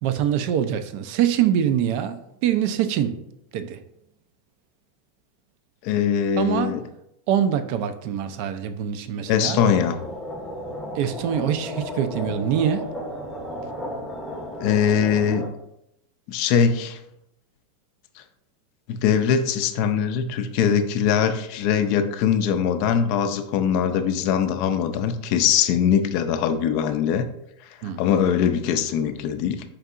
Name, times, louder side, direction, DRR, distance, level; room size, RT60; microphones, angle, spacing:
voice 1, 0.0-3.2 3.5-3.8 6.4-6.8 7.3-9.6 10.9-12.9 27.8-28.0, right 9 dB, 60° right, 0.3 m, -24 dB
voice 2, 5.8-6.8 9.3-10.0 14.6-15.5 16.3-17.0 18.9-27.3 28.0-29.6, left 8 dB, 55° left, 0.3 m, -22 dB
sound 1, 9.5-15.5, equal, 5° left, 0.7 m, -34 dB
4.5 x 2.7 x 2.4 m
hypercardioid pair, 110°, 0 cm